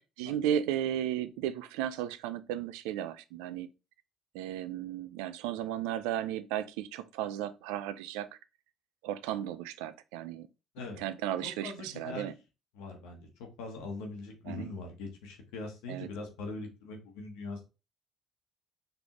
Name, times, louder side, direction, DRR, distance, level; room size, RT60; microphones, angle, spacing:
voice 1, 0.2-3.7 4.3-8.3 9.0-10.5 11.0-12.3 14.5-14.7 15.9-16.1, right 11 dB, 90° right, 0.4 m, -34 dB
voice 2, 11.4-12.3 12.7-17.7, left 3 dB, 85° left, 1.1 m, -42 dB
4.0 x 3.3 x 2.9 m
supercardioid pair, 75°, 0 cm